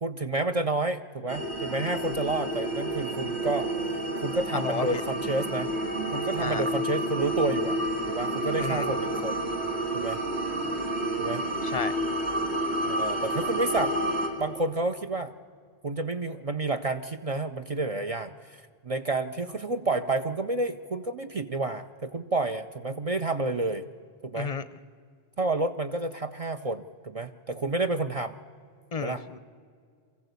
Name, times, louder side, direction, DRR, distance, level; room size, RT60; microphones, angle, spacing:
voice 1, 0.0-3.7 4.2-5.7 6.1-7.8 8.1-9.4 9.9-10.2 11.2-11.4 12.8-13.9 14.4-15.3 15.8-23.9 24.2-24.5 25.4-28.3 28.9-29.2, right 2 dB, 40° right, 7 dB, 0.6 m, -30 dB
sound 1, 1.3-14.3, right 1 dB, 85° right, 2.9 m, -30 dB
voice 2, 4.5-5.0 6.4-6.7 8.6-8.9 11.6-12.0 24.3-24.6 28.9-29.4, left 5 dB, 40° left, 14 dB, 0.6 m, -32 dB
24.0 x 15.0 x 8.2 m, 2.1 s
omnidirectional pair, 1.1 m